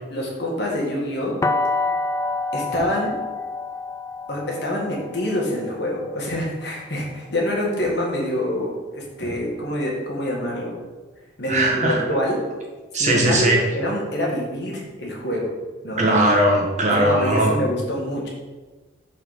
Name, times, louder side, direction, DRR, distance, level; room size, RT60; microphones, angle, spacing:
voice 1, 0.1-1.4 2.5-3.2 4.3-10.8 11.4-12.4 13.0-15.5 15.8-16.0 16.9-18.3, left 1 dB, 60° left, -2 dB, 1.7 m, -26 dB
sound 1, 1.4-7.3, left 3 dB, 15° left, 0.3 m, -28 dB
voice 2, 11.5-12.2 12.9-13.6 16.0-17.6, right 1 dB, 35° right, -2 dB, 1.4 m, -19 dB
5.8 x 4.2 x 5.5 m, 1.2 s
head